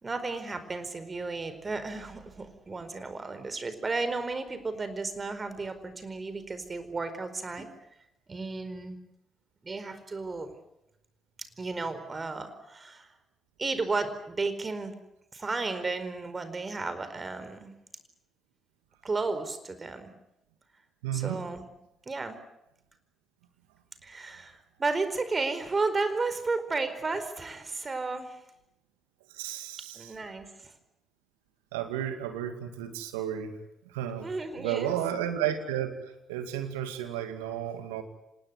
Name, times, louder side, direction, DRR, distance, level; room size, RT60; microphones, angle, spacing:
voice 1, 0.0-7.7 8.3-9.0 9.6-10.5 11.6-13.1 13.6-15.0 15.3-17.7 19.0-20.1 21.1-21.7 22.1-22.4 24.0-28.4 29.9-30.7 34.2-34.9, right 3 dB, 35° right, 10 dB, 4.6 m, -33 dB
voice 2, 21.0-21.4 29.3-30.1 31.7-33.5 33.9-34.3 34.6-36.0 36.3-38.0, right 10 dB, 80° right, 8 dB, 2.3 m, -32 dB
26.0 x 20.0 x 9.6 m, 0.86 s
hypercardioid pair, 45°, 0 cm